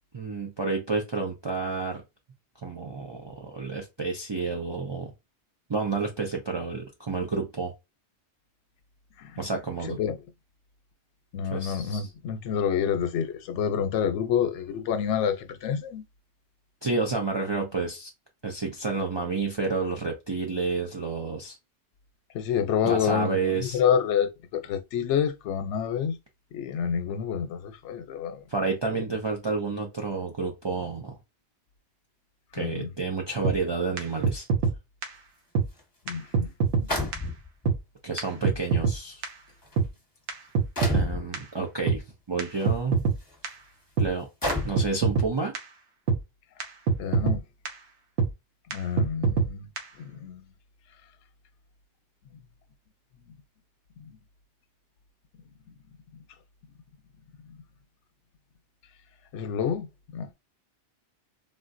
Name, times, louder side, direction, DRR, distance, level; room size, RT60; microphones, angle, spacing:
voice 1, 0.1-2.0 2.6-5.1 5.7-7.7 9.4-10.0 11.5-12.1 16.8-18.1 18.4-21.6 22.8-23.8 28.5-31.2 32.5-34.5 38.0-39.2 40.9-43.0 44.0-44.3 44.6-45.5, right 4 dB, 45° right, 0.3 m, -30 dB
voice 2, 11.3-16.0 22.3-26.2 26.5-28.4 32.6-32.9 36.1-36.5 36.8-37.1 47.0-47.4 48.7-49.7 50.2-50.4 59.3-59.9 60.1-60.3, left 8 dB, 85° left, 0.9 m, -28 dB
sound 1, 33.4-33.6 34.0-34.1 34.2-34.7 35.0-35.1 35.5-35.7 36.1-36.2 36.3-36.9 37.1-37.2 37.7-37.8 38.2-38.3 38.4-39.0 39.2-39.3 39.8-39.9 40.3-41.1 41.3-41.4 41.9-42.0 42.4-42.5 42.7-43.2 43.4-43.5 44.0-44.1 44.5-44.6 44.8-45.3 45.5-45.6 46.1-46.2 46.6-46.7 46.9-47.4 47.7-47.8 48.2-48.3 48.7-48.8 49.0-49.5 49.8-49.9, right 5 dB, 85° right, 1.1 m, -23 dB
sound 2, 35.8-35.9 36.9-37.7 38.6-38.7 39.5-39.7 40.8-41.2 42.5-42.7 43.3-43.4 44.4-44.9, left 2 dB, 20° left, 1.0 m, -29 dB
3.7 x 2.1 x 2.5 m
omnidirectional pair, 1.2 m